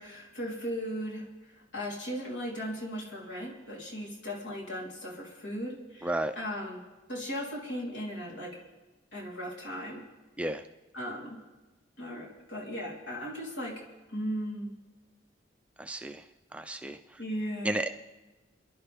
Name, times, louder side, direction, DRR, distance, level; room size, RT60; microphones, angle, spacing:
voice 1, 0.0-6.8 7.1-8.6 9.1-10.0 10.9-11.4 12.0-13.8 14.1-14.7 17.2-17.9, equal, 70° left, -2 dB, 3.6 m, -37 dB
voice 2, 6.0-6.3 10.4-10.6 15.8-16.2 16.5-17.2 17.6-17.9, right 1 dB, 5° right, 7 dB, 0.4 m, -32 dB
29.5 x 11.0 x 3.5 m, 1.1 s
head